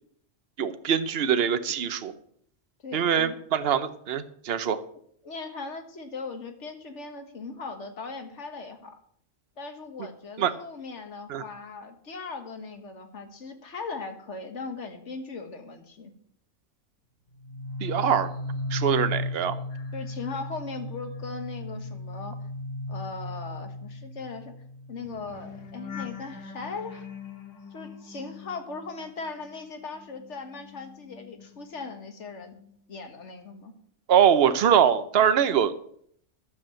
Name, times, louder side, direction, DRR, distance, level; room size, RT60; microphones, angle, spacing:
voice 1, 0.6-2.1 2.9-4.8 10.4-10.5 11.3-11.4 17.8-18.3 18.7-19.6 34.1-35.7, right 8 dB, 55° right, 12 dB, 1.0 m, -23 dB
voice 2, 2.8-3.4 5.2-9.0 9.6-16.1 19.9-22.4 22.9-24.5 24.9-27.1 27.7-32.6 32.9-33.7, left 4 dB, 70° left, 6 dB, 1.8 m, -39 dB
sound 1, 17.4-29.6 29.9-32.0 32.3-32.7, left 2 dB, 85° left, 1.9 m, -37 dB
11.0 x 7.3 x 7.6 m, 0.65 s
omnidirectional pair, 1.3 m